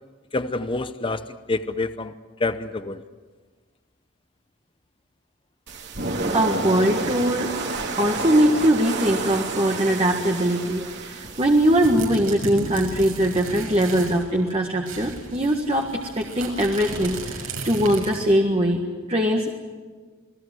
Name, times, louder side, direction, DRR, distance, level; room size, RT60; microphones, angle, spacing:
voice 1, 0.3-2.1 2.4-3.0, left 3 dB, 25° left, 11 dB, 0.7 m, -27 dB
sound 1, 5.7-12.1, right 3 dB, 55° right, 2.9 m, -30 dB
voice 2, 6.3-7.5 8.0-18.8 19.1-19.5, right 1 dB, 30° right, 1 dB, 1.7 m, -21 dB
sound 2, 11.2-14.2 14.5-14.6 14.8-18.4, right 2 dB, 85° right, 6.9 m, -35 dB
28.5 x 19.0 x 7.8 m, 1.4 s
head